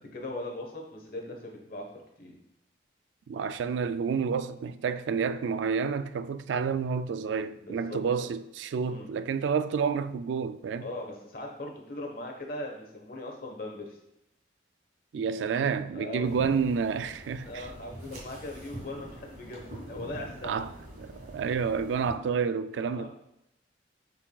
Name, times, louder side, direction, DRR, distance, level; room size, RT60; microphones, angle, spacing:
voice 1, 0.0-1.8 2.2-2.4 7.5-8.3 8.9-9.1 10.8-14.0 15.9-16.6 17.4-20.5 22.9-23.1, left 1 dB, 55° left, 1.2 m, -39 dB
voice 2, 3.3-10.9 15.1-17.7 20.4-20.7 21.0-23.1, right 6 dB, 85° right, 0.3 m, -29 dB
sound 1, 16.2-22.1, right 1 dB, 45° right, 2.1 m, -44 dB
8.4 x 4.8 x 2.3 m
head